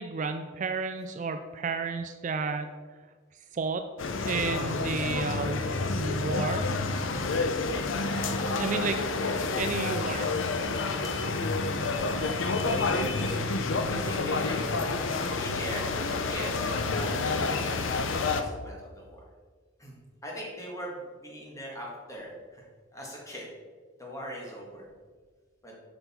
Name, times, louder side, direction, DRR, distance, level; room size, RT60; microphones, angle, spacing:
voice 1, 0.0-2.8 3.5-3.9 4.2-5.7 5.9-6.7 8.6-9.0 9.6-10.3, right 4 dB, 40° right, 7 dB, 0.3 m, -32 dB
sound 1, 4.0-18.4, left 3 dB, 70° left, 0.6 m, -29 dB
voice 2, 7.2-8.8 9.2-9.4 12.1-19.2 19.8-19.9 20.2-22.7 22.9-23.5 24.0-24.9 25.6-25.7, equal, 15° left, -3 dB, 1.8 m, -41 dB
8.2 x 5.4 x 4.3 m, 1.5 s
head